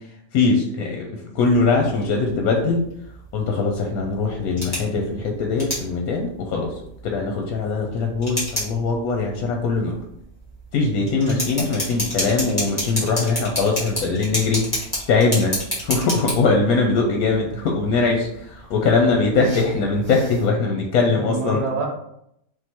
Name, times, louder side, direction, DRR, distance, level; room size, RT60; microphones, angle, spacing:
voice 1, 0.3-1.1 1.3-2.8 3.3-6.7 7.0-10.0 10.7-14.6 15.1-15.6 15.8-21.6, left 4 dB, 80° left, 2 dB, 1.1 m, -21 dB
sound 1, 1.4-20.5, equal, 15° left, 1.6 m, -32 dB
voice 2, 21.1-21.9, right 3 dB, 55° right, 0 dB, 1.1 m, -27 dB
3.7 x 2.6 x 4.2 m, 0.75 s
omnidirectional pair, 1.5 m